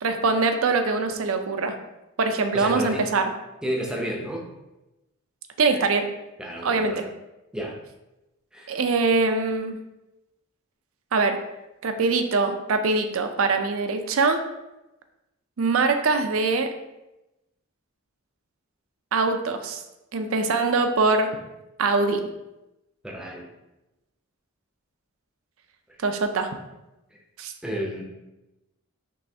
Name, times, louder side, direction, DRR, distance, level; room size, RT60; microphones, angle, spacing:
voice 1, 0.0-1.7 2.2-3.3 5.6-6.1 6.6-7.0 8.7-9.8 11.1-11.4 11.8-14.4 15.6-16.7 19.1-19.8 20.1-21.3 21.8-22.2 26.0-26.5 27.4-27.5, right 3 dB, 70° right, 7 dB, 0.5 m, -23 dB
voice 2, 2.5-3.1 3.6-4.5 5.7-5.8 6.4-7.0 7.5-7.7 8.5-8.7 23.0-23.5 27.6-28.0, equal, 5° right, -1 dB, 0.6 m, -31 dB
5.4 x 3.2 x 2.7 m, 0.96 s
head